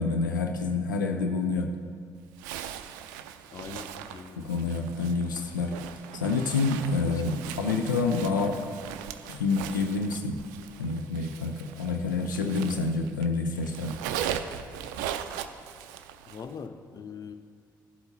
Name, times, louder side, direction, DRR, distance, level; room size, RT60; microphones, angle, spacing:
voice 1, 0.0-1.7 4.4-5.8 6.1-8.6 9.3-10.3 10.8-14.0, left 4 dB, 80° left, 4 dB, 0.5 m, -28 dB
Zipper (clothing), 2.4-13.3 13.6-16.5, right 9 dB, 70° right, 0.4 m, -39 dB
voice 2, 3.5-4.4 7.1-7.5 16.3-17.3, left 5 dB, 35° left, 9 dB, 0.6 m, -42 dB
15.0 x 7.9 x 2.7 m, 2.1 s
figure-of-eight pair, 45°, 10 cm